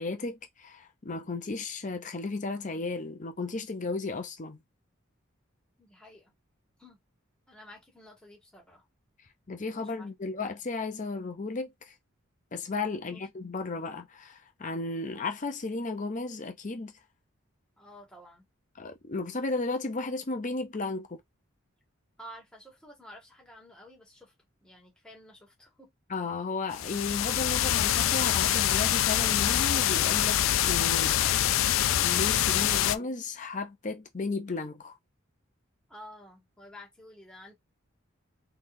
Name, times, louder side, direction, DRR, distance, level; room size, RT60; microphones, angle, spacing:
voice 1, 0.0-4.6 9.5-11.9 12.5-16.9 18.8-21.2 26.1-35.0, left 3 dB, 40° left, 0.7 m, -34 dB
voice 2, 5.8-6.3 6.8-7.0 7.5-8.9 9.6-10.1 13.0-13.3 17.8-18.5 22.2-24.3 24.6-25.9 35.9-37.5, equal, 5° left, 1.8 m, -51 dB
sound 1, 26.7-33.0, left 11 dB, 75° left, 0.4 m, -25 dB
4.0 x 3.3 x 2.7 m
head